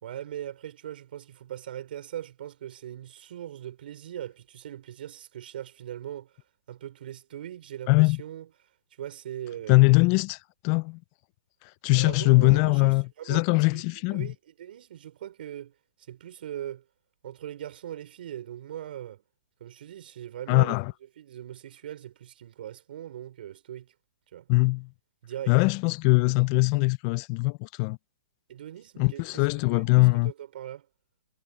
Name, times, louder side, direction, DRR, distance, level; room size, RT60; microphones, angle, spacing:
voice 1, 0.0-6.3 6.7-8.5 9.0-9.8 11.9-13.8 14.1-15.7 16.0-16.8 17.2-19.2 19.6-20.8 21.2-23.9 24.3-24.5 25.2-25.5 28.5-30.9, right 11 dB, 60° right, 5.2 m, -40 dB
voice 2, 7.9-8.2 9.7-10.4 10.6-11.0 11.8-14.3 20.5-20.9 24.5-24.9 25.5-28.0 29.0-30.3, left 26 dB, 30° left, 0.6 m, -22 dB
hypercardioid pair, 150°, 6 cm